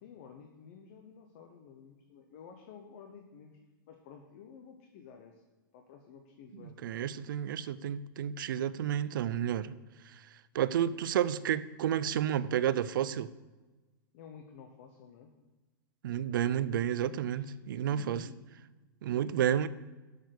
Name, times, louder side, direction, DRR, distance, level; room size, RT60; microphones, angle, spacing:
voice 1, 0.0-3.6 3.9-5.4 5.7-6.8 14.1-15.3 17.0-17.5 17.8-18.4, left 6 dB, 35° left, 4 dB, 0.8 m, -52 dB
voice 2, 6.6-9.8 10.5-13.3 16.0-18.2 19.0-19.7, right 10 dB, 70° right, 16 dB, 0.5 m, -31 dB
8.1 x 6.7 x 8.1 m, 1.2 s
supercardioid pair, 175°, 12 cm